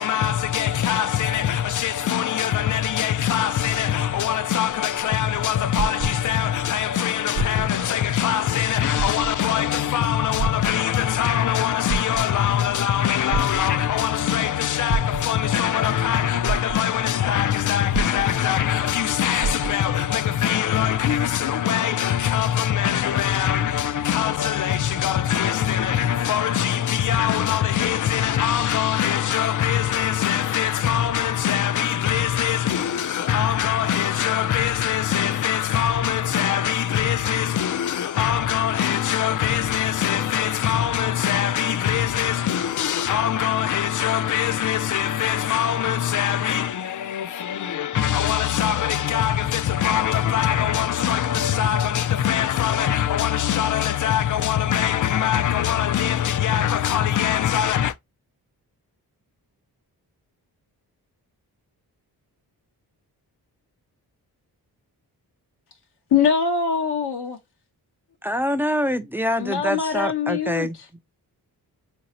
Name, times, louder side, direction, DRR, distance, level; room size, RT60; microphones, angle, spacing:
voice 1, 0.0-58.0, left 10 dB, 50° left, 0.4 m, -22 dB
sound 1, 4.6-6.6 7.2-7.9 8.3-8.4 8.9-9.6 10.4-11.2 11.7-12.6 13.3-14.1 14.9-15.6 16.1-16.2 16.5-17.2 17.9-18.7 19.0-19.1 19.4-20.0 20.8-20.9, right 5 dB, 50° right, 0.6 m, -29 dB
voice 2, 66.1-67.4 69.4-70.7, left 6 dB, 80° left, 0.8 m, -22 dB
voice 3, 68.2-71.0, equal, 5° right, 0.4 m, -25 dB
3.9 x 2.8 x 2.9 m
cardioid pair, 80°, 40 cm